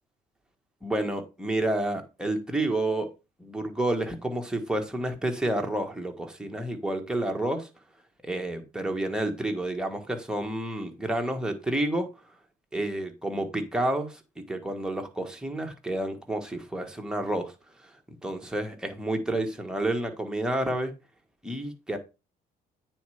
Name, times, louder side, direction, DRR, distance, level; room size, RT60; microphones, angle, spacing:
voice 1, 0.8-3.1 3.4-7.7 8.2-12.1 12.7-14.2 14.5-17.5 17.8-17.9 18.2-20.9 21.4-22.0, right 1 dB, 5° right, 1.6 m, -29 dB
9.2 x 4.4 x 4.9 m
cardioid pair, 110°, 17 cm